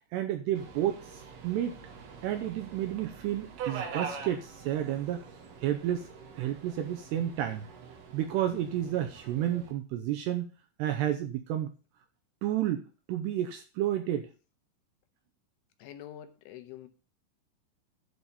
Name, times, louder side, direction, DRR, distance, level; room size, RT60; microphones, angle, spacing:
voice 1, 0.1-1.8 2.2-5.2 5.6-6.1 6.4-7.7 8.1-10.5 10.8-11.7 12.4-12.8 13.1-14.3, right 11 dB, 85° right, 6 dB, 2.5 m, -31 dB
Subway metro underground, 0.6-9.7, right 6 dB, 65° right, 3.3 m, -44 dB
voice 2, 15.8-16.9, left 11 dB, 80° left, 7 dB, 3.4 m, -46 dB
11.5 x 4.2 x 6.9 m, 0.35 s
omnidirectional pair, 5.6 m